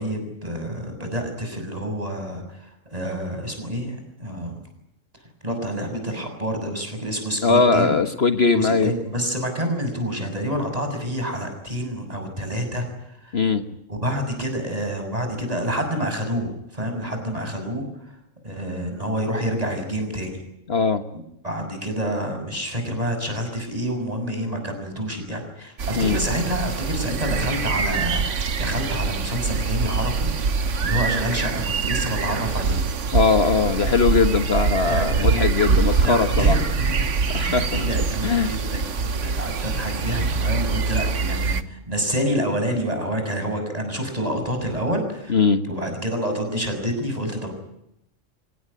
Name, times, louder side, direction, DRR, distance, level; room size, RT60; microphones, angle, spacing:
voice 1, 0.0-4.6 5.4-7.9 8.5-13.4 13.9-18.1 18.4-20.4 21.1-30.3 30.8-32.8 34.8-45.4 45.7-47.5, equal, 30° right, 5 dB, 6.8 m, -28 dB
voice 2, 7.4-8.9 13.3-13.7 20.7-21.0 26.0-26.2 33.1-36.6 37.3-37.9 38.2-38.5 45.3-45.6, left 4 dB, 55° left, 8 dB, 1.6 m, -20 dB
sound 1, 25.8-41.6, right 5 dB, 70° right, 1.5 m, -24 dB
25.5 x 18.5 x 10.0 m, 0.81 s
omnidirectional pair, 1.3 m